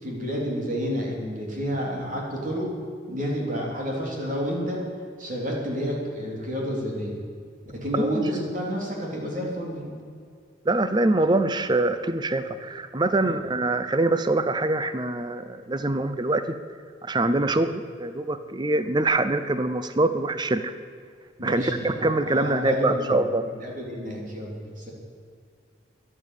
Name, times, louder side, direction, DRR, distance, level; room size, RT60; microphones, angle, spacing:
voice 1, 0.0-2.7 3.1-4.8 5.2-7.2 7.7-9.9 13.2-13.4 21.4-24.9, equal, 40° right, -2 dB, 3.4 m, -30 dB
voice 2, 10.7-16.4 17.0-20.7 21.4-23.4, right 2 dB, 25° right, 11 dB, 0.6 m, -24 dB
12.5 x 11.0 x 8.3 m, 2.2 s
head